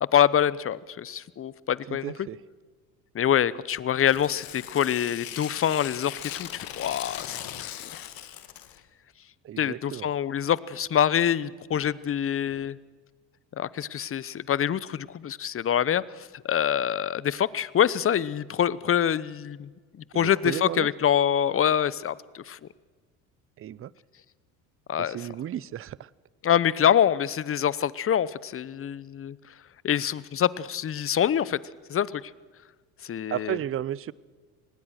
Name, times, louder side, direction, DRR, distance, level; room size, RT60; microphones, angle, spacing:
voice 1, 0.0-2.1 3.1-7.7 9.6-12.8 13.6-19.7 20.1-22.6 24.9-25.2 26.4-29.4 29.8-31.6 31.9-32.2 33.0-33.6, left 9 dB, 30° left, 20 dB, 0.9 m, -25 dB
voice 2, 1.9-2.4 9.4-10.1 20.1-20.9 23.6-23.9 25.0-26.1 33.3-34.1, right 11 dB, 30° right, 23 dB, 0.6 m, -33 dB
Tearing, 4.0-8.8, left 12 dB, 55° left, 1.9 m, -39 dB
25.0 x 19.5 x 6.5 m, 1.5 s
hypercardioid pair, 70°, 42 cm